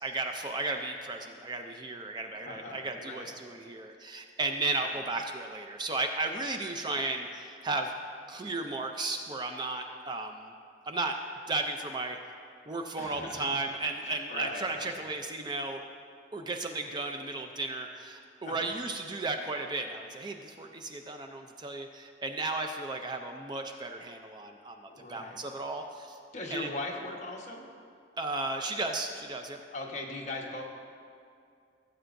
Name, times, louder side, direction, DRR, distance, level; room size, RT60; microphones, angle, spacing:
voice 1, 0.0-7.9 8.3-10.5 10.9-11.2 11.5-12.2 12.7-15.8 16.3-24.8 25.1-26.2 26.5-26.7 28.2-29.6, right 3 dB, 25° right, 4 dB, 0.4 m, -34 dB
voice 2, 2.4-3.3 4.8-4.9 13.0-13.6 14.0-15.0 18.4-18.7 24.9-25.4 26.3-27.6 29.7-30.6, left 2 dB, 40° left, -1 dB, 1.1 m, -40 dB
17.0 x 8.0 x 2.6 m, 2.4 s
head